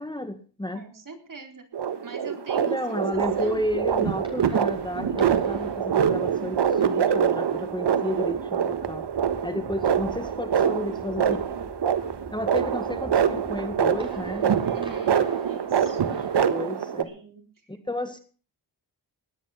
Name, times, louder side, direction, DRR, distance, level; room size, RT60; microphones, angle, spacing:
voice 1, 0.0-0.8 2.6-9.1 9.4-11.4 12.3-14.5 16.1-17.1 17.7-18.2, left 1 dB, 10° left, 9 dB, 1.7 m, -32 dB
voice 2, 0.7-1.6 2.0-3.6 14.6-16.0 17.0-17.4, right 4 dB, 45° right, 4 dB, 4.3 m, -43 dB
sound 1, 1.7-17.0, right 8 dB, 65° right, 1.5 m, -25 dB
sound 2, 3.1-16.5, right 1 dB, 10° right, 7.1 m, -47 dB
19.0 x 10.0 x 5.9 m, 0.40 s
cardioid pair, 75°, 44 cm